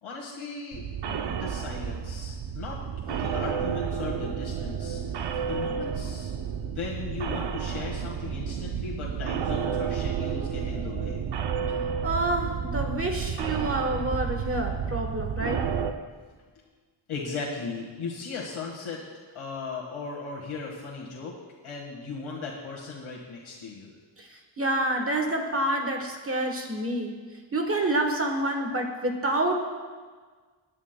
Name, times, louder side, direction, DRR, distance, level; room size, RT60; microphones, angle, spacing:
voice 1, 0.0-2.8 3.2-5.0 5.4-6.3 6.6-11.2 17.1-19.0 19.3-21.4 21.6-23.9, left 4 dB, 90° left, -3 dB, 1.7 m, -37 dB
sound 1, 0.7-15.9, right 7 dB, 60° right, 0.6 m, -31 dB
voice 2, 12.0-15.6 24.2-24.3 24.6-27.1 27.5-29.6, right 1 dB, 30° right, 3 dB, 1.1 m, -28 dB
21.0 x 9.8 x 2.2 m, 1.5 s
wide cardioid pair, 180°, 48 cm